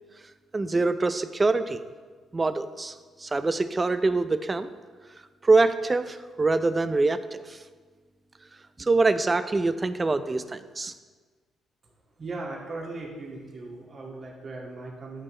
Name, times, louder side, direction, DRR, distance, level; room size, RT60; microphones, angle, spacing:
voice 1, 0.5-1.9 2.3-2.9 3.2-4.7 5.4-7.6 8.8-10.9, right 3 dB, 25° right, 12 dB, 0.5 m, -24 dB
voice 2, 12.2-15.2, right 3 dB, 45° right, -3 dB, 2.2 m, -38 dB
13.0 x 6.1 x 3.3 m, 1.5 s
cardioid pair, 90°, 0 cm